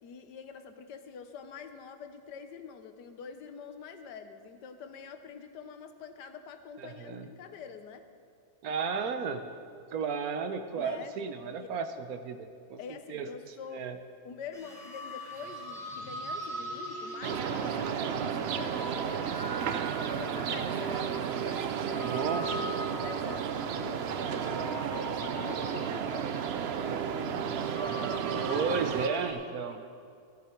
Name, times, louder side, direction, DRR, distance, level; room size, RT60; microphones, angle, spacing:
voice 1, 0.0-8.0 10.7-11.7 12.8-19.5 20.0-22.3 22.6-26.5 28.3-28.7 29.7-29.9, left 6 dB, 90° left, 8 dB, 1.5 m, -46 dB
voice 2, 6.8-7.3 8.6-9.5 9.9-12.4 12.7-12.8 13.1-13.3 13.7-14.0 22.0-22.6 28.4-29.9, right 5 dB, 65° right, 8 dB, 1.2 m, -33 dB
sound 1, 14.5-29.3, equal, ahead, 3.3 m, -41 dB
sound 2, 17.2-29.1, right 8 dB, 85° right, 0.5 m, -33 dB
14.5 x 13.0 x 4.4 m, 2.3 s
omnidirectional pair, 1.8 m